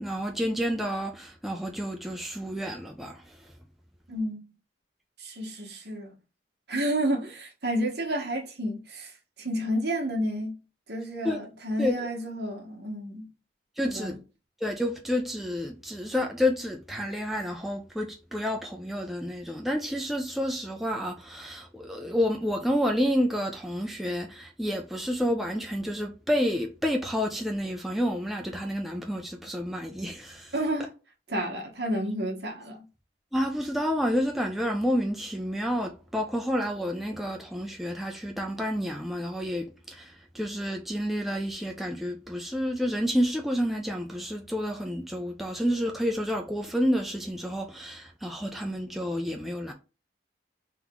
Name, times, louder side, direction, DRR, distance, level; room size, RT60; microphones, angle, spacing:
voice 1, 0.0-3.5 11.2-11.4 11.8-12.0 13.8-14.2 14.6-30.5 33.3-49.7, equal, ahead, 0.5 m, -29 dB
voice 2, 4.1-4.5 5.2-6.2 6.7-10.6 10.9-13.3 13.9-14.2 30.5-30.9 31.3-32.9, equal, 60° right, 1.3 m, -30 dB
3.6 x 3.0 x 3.6 m
head